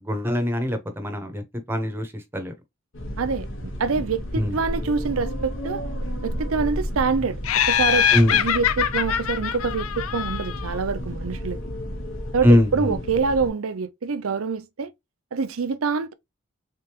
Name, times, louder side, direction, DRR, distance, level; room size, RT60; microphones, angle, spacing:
voice 1, 0.0-2.5 4.3-4.6 8.1-8.4 12.4-13.0, left 1 dB, 10° right, 0.8 m, -22 dB
sound 1, 2.9-13.5, equal, 70° left, 1.2 m, -32 dB
voice 2, 3.2-5.8 6.2-7.4 7.7-11.6 12.3-14.9 15.3-16.1, right 5 dB, 80° right, 0.6 m, -26 dB
Laughter, 7.4-10.8, left 9 dB, 90° left, 0.4 m, -23 dB
3.8 x 3.4 x 2.9 m
head